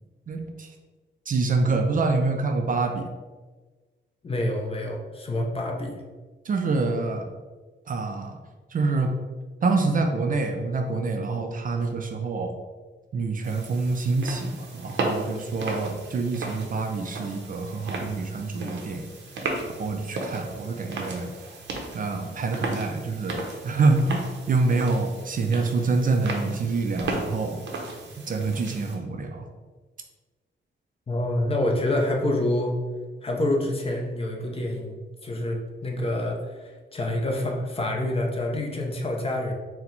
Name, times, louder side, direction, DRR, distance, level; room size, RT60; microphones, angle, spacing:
voice 1, 0.3-0.7 1.3-3.1 6.5-7.3 7.9-8.4 8.7-9.1 9.6-12.5 13.1-19.1 19.4-19.5 19.7-21.3 21.9-27.6 28.3-29.5, right 3 dB, 45° right, 4 dB, 0.4 m, -26 dB
voice 2, 4.2-6.0 31.1-32.8 33.2-35.0 35.2-39.5, left 1 dB, 30° left, 1 dB, 0.6 m, -27 dB
sound 1, 13.4-28.9, right 2 dB, 65° right, 0.7 m, -35 dB
4.3 x 2.1 x 3.9 m, 1.3 s
wide cardioid pair, 140°, 20 cm